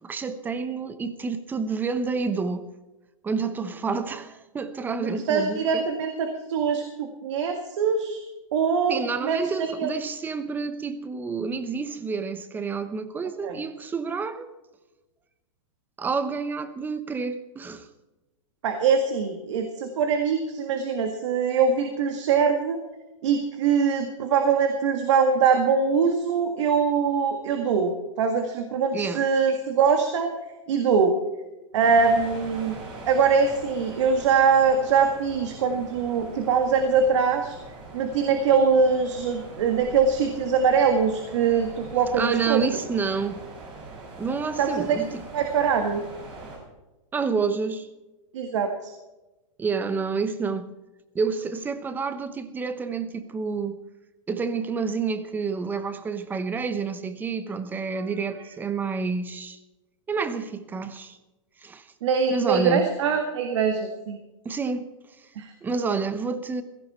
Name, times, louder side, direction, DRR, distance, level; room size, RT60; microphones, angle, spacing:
voice 1, 0.0-2.7 3.2-5.8 8.9-14.5 16.0-17.9 28.9-29.3 42.2-43.4 44.2-45.2 47.1-47.9 49.6-50.7 51.1-53.8 54.3-59.6 60.1-61.2 61.6-61.9 62.3-62.9 64.4-64.9 65.6-66.6, right 5 dB, 10° right, 0.9 m, -29 dB
voice 2, 5.3-8.2 8.5-9.9 13.4-13.6 18.6-22.8 23.2-30.3 30.7-31.2 31.7-32.8 33.1-37.6 37.9-42.6 44.6-45.0 45.3-46.0 48.3-48.9 57.9-58.1 62.0-64.2 65.4-65.5, right 5 dB, 65° right, 1.8 m, -23 dB
sound 1, 31.8-46.6, right 3 dB, 30° right, 5.3 m, -42 dB
17.0 x 15.0 x 4.3 m
hypercardioid pair, 145°, 17 cm